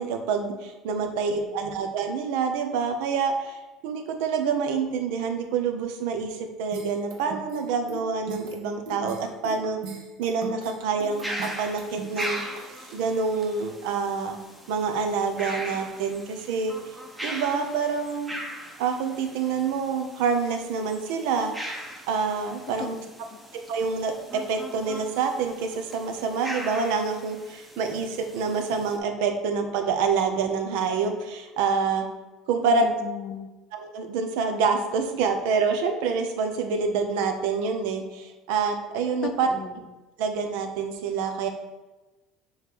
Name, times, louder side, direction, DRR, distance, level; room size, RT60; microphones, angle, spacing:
voice 1, 0.0-9.8 10.2-12.4 12.9-14.4 14.7-16.7 17.2-18.4 18.8-21.5 22.1-23.0 23.7-32.0 32.5-32.9 33.7-39.5 40.2-41.5, right 5 dB, 80° right, 6 dB, 0.8 m, -27 dB
voice 2, 0.9-1.5 22.8-23.0 23.3-23.4 32.6-33.5 39.2-39.9, left 8 dB, 40° left, 8 dB, 0.5 m, -37 dB
sound 1, 6.7-12.9, right 4 dB, 65° right, 1.3 m, -40 dB
sound 2, 11.1-29.0, equal, 5° right, 0.7 m, -40 dB
6.3 x 3.2 x 5.2 m, 1.1 s
cardioid pair, 165°, 0 cm